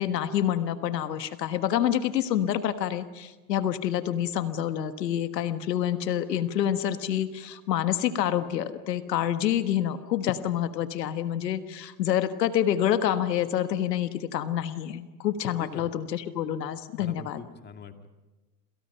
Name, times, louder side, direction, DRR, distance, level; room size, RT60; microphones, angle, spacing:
voice 1, 0.0-17.4, left 10 dB, 85° left, 10 dB, 1.5 m, -27 dB
voice 2, 15.5-15.9 17.0-18.1, left 6 dB, 20° left, 6 dB, 2.3 m, -43 dB
28.0 x 27.5 x 5.7 m, 1.1 s
hypercardioid pair, 115°, 48 cm